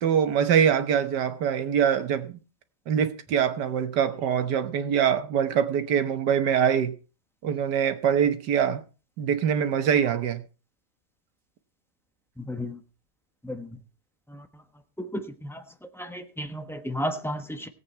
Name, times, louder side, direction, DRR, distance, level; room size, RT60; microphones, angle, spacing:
voice 1, 0.0-2.4 2.9-7.0 7.4-8.8 9.2-10.4, right 8 dB, 85° right, 1.7 m, -24 dB
voice 2, 12.4-12.8 13.4-13.7 14.3-14.4 15.0-15.6 16.0-17.7, equal, ahead, 0.9 m, -33 dB
17.0 x 8.6 x 4.4 m
omnidirectional pair, 1.8 m